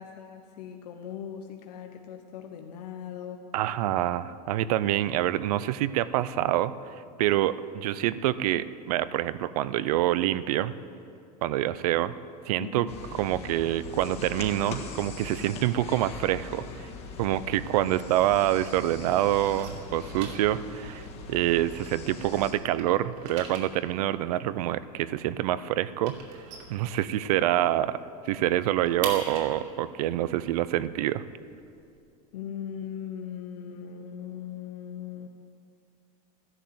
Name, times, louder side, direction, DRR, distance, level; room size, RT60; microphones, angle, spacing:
voice 1, 0.0-3.4 12.6-12.9 32.3-35.3, left 8 dB, 85° left, 5 dB, 1.0 m, -39 dB
voice 2, 3.5-10.7 11.4-12.1 12.5-12.9 13.2-16.9 17.2-26.2 26.7-28.0 28.2-31.2, right 13 dB, 70° right, 16 dB, 0.6 m, -26 dB
sound 1, 12.9-22.5, left 4 dB, 30° left, 1.6 m, -41 dB
sound 2, 17.3-18.7 19.0-22.2 22.5-27.5 27.9-28.0 28.3-32.0, right 5 dB, 50° right, 2.5 m, -43 dB
13.0 x 11.0 x 7.7 m, 2.5 s
supercardioid pair, 165°, 20 cm